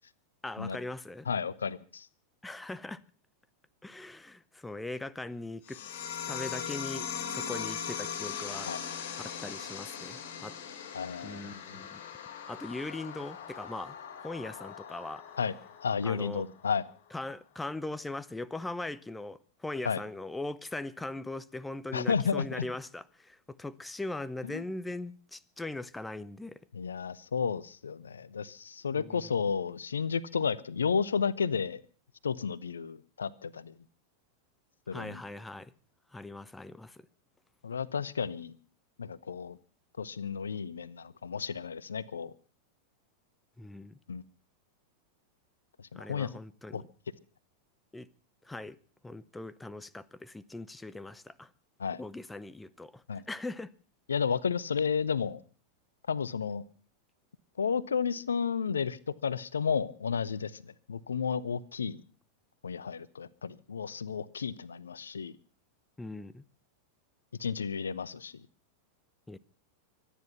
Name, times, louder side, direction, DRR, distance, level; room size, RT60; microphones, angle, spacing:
voice 1, 0.4-1.3 2.4-3.0 3.8-5.8 6.3-8.7 9.2-10.6 11.2-12.0 12.5-13.9 14.2-15.2 16.0-16.4 17.1-26.6 28.9-29.3 34.9-35.7 36.1-37.0 43.6-44.0 46.0-46.8 47.9-48.1 48.4-48.8 49.0-51.5 52.0-53.7 66.0-66.4 69.3-69.4, left 2 dB, 5° left, 0.7 m, -40 dB
voice 2, 1.3-2.1 8.7-8.8 10.9-11.8 15.4-15.5 15.8-16.8 19.8-20.0 21.9-22.6 24.4-24.6 26.7-31.8 32.2-33.7 34.9-35.2 37.6-38.5 39.0-39.6 40.0-42.3 44.1-44.2 45.8-46.3 46.7-46.8 51.8-52.0 53.1-53.2 54.1-55.4 56.1-56.6 57.6-62.0 62.6-65.3 67.4-68.3, left 6 dB, 70° left, 0.7 m, -32 dB
sound 1, 5.7-16.7, left 8 dB, 50° left, 3.1 m, -40 dB
24.0 x 10.0 x 5.7 m
figure-of-eight pair, 90°, 0 cm